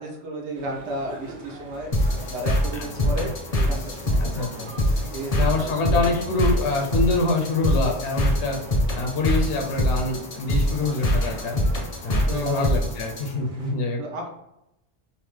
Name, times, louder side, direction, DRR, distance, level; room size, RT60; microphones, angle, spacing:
voice 1, 0.0-1.9 2.3-4.6 5.1-6.2 12.3-12.6 14.0-14.3, right 2 dB, 90° right, 0 dB, 1.0 m, -33 dB
sound 1, 0.5-13.7, right 1 dB, 45° right, 0.9 m, -44 dB
sound 2, 1.9-13.3, left 1 dB, 50° left, 0.5 m, -24 dB
voice 2, 2.7-3.1 4.2-4.7 5.3-8.6 8.9-11.6 12.0-14.0, left 3 dB, 85° left, 1 dB, 0.9 m, -25 dB
2.8 x 2.0 x 3.2 m, 0.86 s
omnidirectional pair, 1.1 m